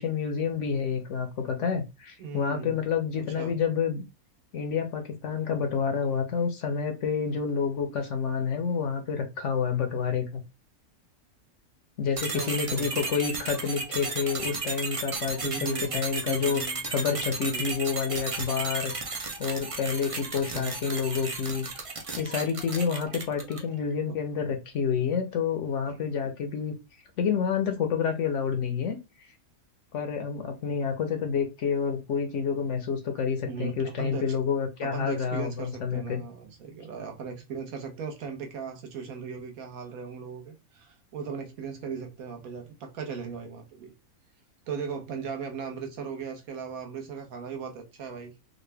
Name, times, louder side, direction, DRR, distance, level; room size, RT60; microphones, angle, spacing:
voice 1, 0.0-4.0 4.5-10.4 12.0-18.9 19.4-21.7 22.2-26.7 27.2-29.3 29.9-36.2, left 6 dB, 65° left, 0.9 m, -29 dB
voice 2, 2.2-2.8 3.1-3.6 12.3-12.9 15.4-16.0 16.3-16.9 17.5-17.7 20.5-20.7 24.1-24.2 25.9-26.0 33.5-34.4 34.8-43.9 44.7-48.3, right 6 dB, 70° right, 1.3 m, -38 dB
sound 1, 12.2-23.7, right 3 dB, 40° right, 0.4 m, -34 dB
3.8 x 2.1 x 3.3 m
omnidirectional pair, 1.6 m